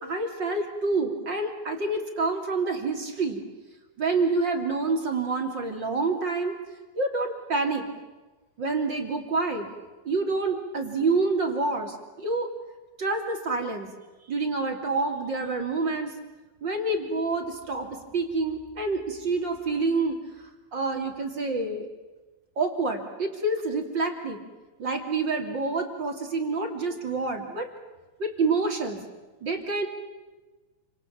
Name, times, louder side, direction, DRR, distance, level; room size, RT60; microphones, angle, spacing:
voice 1, 0.0-3.4 4.0-6.6 6.9-7.9 8.6-9.7 10.0-12.5 13.0-13.9 14.3-16.1 16.6-21.9 22.6-24.4 24.8-27.7 28.2-29.0 29.4-29.9, right 3 dB, 35° right, 4 dB, 3.2 m, -27 dB
29.0 x 27.0 x 7.4 m, 1.2 s
omnidirectional pair, 4.1 m